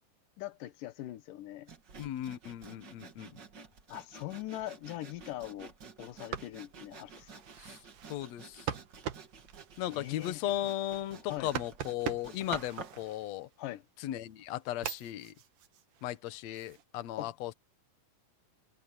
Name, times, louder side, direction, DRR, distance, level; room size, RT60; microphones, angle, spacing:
voice 1, 0.4-1.7 3.9-5.7 6.0-7.4 9.8-10.5 11.2-11.5 13.6-13.8 17.2-17.3, left 15 dB, 90° left, 2.7 m, -41 dB
Sawing, 1.7-13.0, right 5 dB, 40° right, 2.2 m, -50 dB
voice 2, 2.0-3.3 7.7-7.8 8.1-8.7 9.8-13.5 14.0-15.3 16.0-17.5, left 13 dB, 65° left, 2.1 m, -36 dB
sound 1, 6.1-13.7 14.2-16.8, right 10 dB, 80° right, 3.0 m, -44 dB
omnidirectional pair, 3.7 m